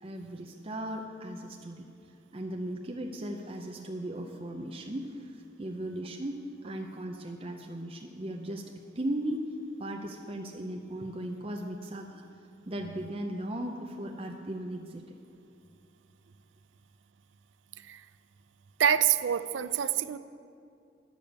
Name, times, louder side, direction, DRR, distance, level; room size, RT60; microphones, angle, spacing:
voice 1, 0.0-1.9 2.3-9.5 9.8-12.2 12.7-15.0, right 1 dB, 30° right, 2 dB, 0.6 m, -37 dB
voice 2, 18.8-20.2, right 9 dB, 75° right, 14 dB, 0.4 m, -26 dB
10.5 x 6.8 x 8.0 m, 2.5 s
head